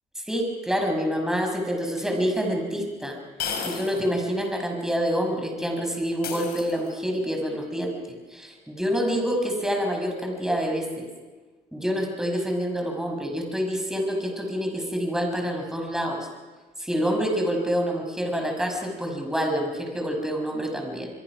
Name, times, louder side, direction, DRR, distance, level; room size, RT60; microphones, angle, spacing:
voice 1, 0.3-3.2 3.6-7.9 8.3-11.1 11.7-16.2 16.8-21.1, equal, 5° right, 3 dB, 5.7 m, -27 dB
sound 1, 2.0-2.1 3.4-4.1 4.5-4.6 6.2-7.1, left 6 dB, 70° left, 4.8 m, -33 dB
25.5 x 22.5 x 6.1 m, 1.3 s
cardioid pair, 110°, 17 cm